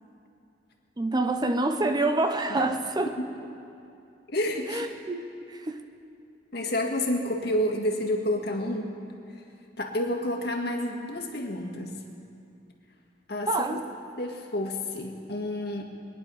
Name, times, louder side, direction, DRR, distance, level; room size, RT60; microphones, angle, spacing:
voice 1, 1.0-3.1 4.7-5.9 13.5-13.9, right 2 dB, 25° right, 7 dB, 0.7 m, -27 dB
voice 2, 4.3-4.8 6.5-8.9 9.3-9.4 9.8-12.0 13.3-13.8 14.2-15.8, left 1 dB, 65° left, 2 dB, 1.8 m, -29 dB
22.0 x 10.5 x 5.5 m, 2.7 s
head